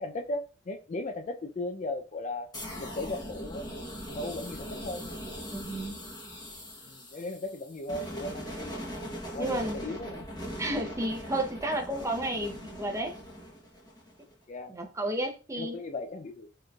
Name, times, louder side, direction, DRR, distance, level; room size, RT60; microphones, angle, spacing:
voice 1, 0.0-2.5 2.8-3.7 4.1-5.2 6.8-8.8 9.3-10.3 14.5-14.7 15.5-16.5, left 2 dB, 40° left, 0.4 m, -37 dB
sound 1, 2.5-14.3, equal, 20° left, 1.1 m, -40 dB
voice 2, 5.5-6.0 9.4-9.8 10.6-13.2 14.7-15.8, right 1 dB, 15° right, 0.7 m, -32 dB
4.5 x 3.1 x 2.3 m
head